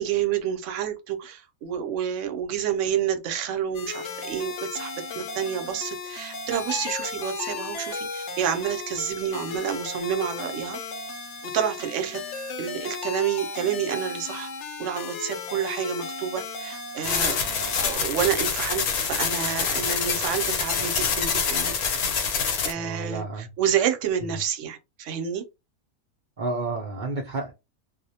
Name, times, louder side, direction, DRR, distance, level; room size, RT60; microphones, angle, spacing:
voice 1, 0.0-10.8 11.5-14.5 14.8-17.4 17.8-21.7 22.4-25.4, right 9 dB, 65° right, 0.8 m, -29 dB
sound 1, 3.7-18.0, left 4 dB, 65° left, 0.8 m, -35 dB
sound 2, 17.0-22.7, left 6 dB, 90° left, 1.2 m, -26 dB
voice 2, 22.8-23.5 24.2-24.3 26.4-27.5, right 3 dB, 90° right, 0.4 m, -31 dB
2.3 x 2.1 x 2.7 m
omnidirectional pair, 1.5 m